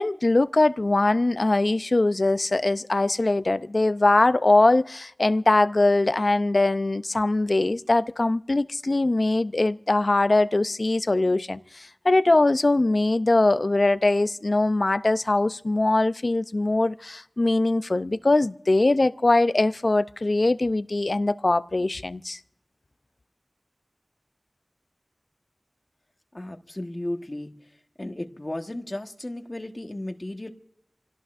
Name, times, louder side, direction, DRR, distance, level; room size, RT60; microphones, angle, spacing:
voice 1, 0.0-22.4, left 2 dB, 60° left, 0.5 m, -22 dB
voice 2, 26.3-27.5 28.0-30.5, left 1 dB, 35° left, 1.3 m, -34 dB
28.0 x 17.5 x 2.5 m
wide cardioid pair, 45°, 0 cm